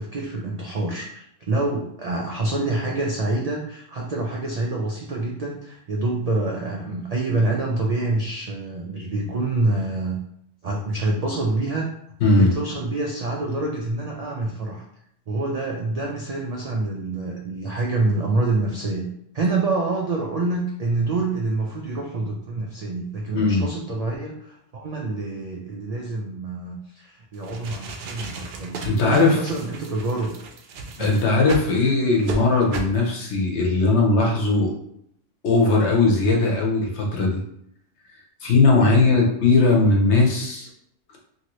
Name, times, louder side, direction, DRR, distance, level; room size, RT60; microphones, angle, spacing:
voice 1, 0.0-10.2 10.6-11.9 12.4-14.8 15.3-19.1 19.3-30.3 31.0-31.2 38.8-39.2, right 2 dB, 85° right, -1 dB, 0.3 m, -26 dB
voice 2, 23.3-23.7 28.8-29.5 31.0-34.7 35.4-37.4 38.4-40.7, left 3 dB, 65° left, -1 dB, 1.0 m, -19 dB
sound 1, 27.3-31.7 32.2-32.4 32.7-33.0, right 4 dB, 65° right, 0.7 m, -35 dB
2.9 x 2.7 x 2.9 m, 0.73 s
omnidirectional pair, 1.3 m